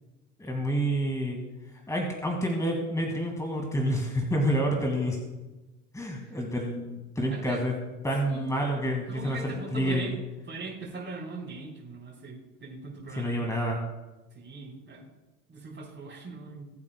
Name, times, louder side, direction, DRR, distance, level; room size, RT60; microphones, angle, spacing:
voice 1, 0.4-1.4 1.9-5.2 5.9-7.7 8.0-10.1 13.2-13.8, equal, 5° left, 1 dB, 2.1 m, -28 dB
voice 2, 7.3-7.6 8.2-8.5 9.1-10.2 10.5-13.5 14.3-15.1 15.5-16.7, right 3 dB, 25° right, -8 dB, 4.1 m, -40 dB
21.0 x 8.4 x 2.3 m, 1.1 s
hypercardioid pair, 70°, 44 cm